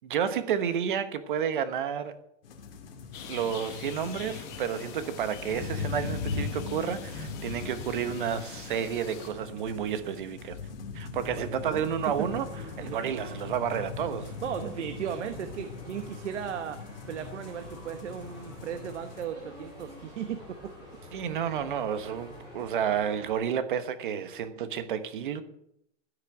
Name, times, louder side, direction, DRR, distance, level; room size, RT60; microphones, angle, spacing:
voice 1, 0.0-2.1 3.3-10.6 10.9-12.5 12.8-14.3 21.1-25.4, right 8 dB, 40° right, 1.1 m, -31 dB
sound 1, 2.4-19.2, left 4 dB, 50° left, 2.4 m, -40 dB
sound 2, 3.1-9.3, left 7 dB, 20° left, 1.1 m, -45 dB
voice 2, 11.3-11.8 12.1-12.3 12.8-13.1 14.4-16.8 17.1-20.7, right 8 dB, 65° right, 1.2 m, -36 dB
sound 3, 11.9-23.3, left 1 dB, 10° right, 4.0 m, -48 dB
15.5 x 6.6 x 7.9 m
hypercardioid pair, 180°, 37 cm